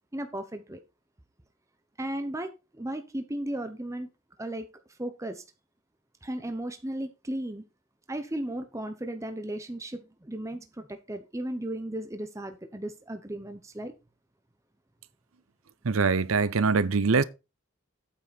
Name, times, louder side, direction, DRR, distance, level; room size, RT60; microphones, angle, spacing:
voice 1, 0.1-0.8 2.0-4.1 4.4-5.4 6.2-7.6 8.1-13.9, right 1 dB, 15° right, 0.8 m, -35 dB
voice 2, 15.8-17.2, right 4 dB, 75° right, 0.7 m, -23 dB
8.7 x 7.4 x 4.1 m
head